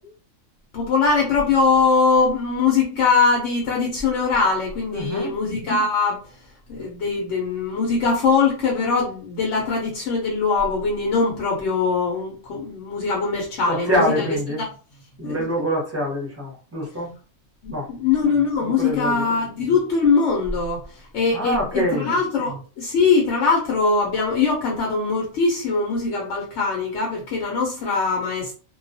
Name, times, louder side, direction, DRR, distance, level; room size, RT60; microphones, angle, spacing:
voice 1, 0.7-14.7 15.2-15.6 17.6-28.5, left 4 dB, 65° left, 0.9 m, -22 dB
voice 2, 4.9-5.4 13.7-14.6 15.2-17.1 17.7-17.9 18.8-19.2 21.3-22.1, equal, 15° right, 0.6 m, -25 dB
2.2 x 2.2 x 2.5 m
omnidirectional pair, 1.4 m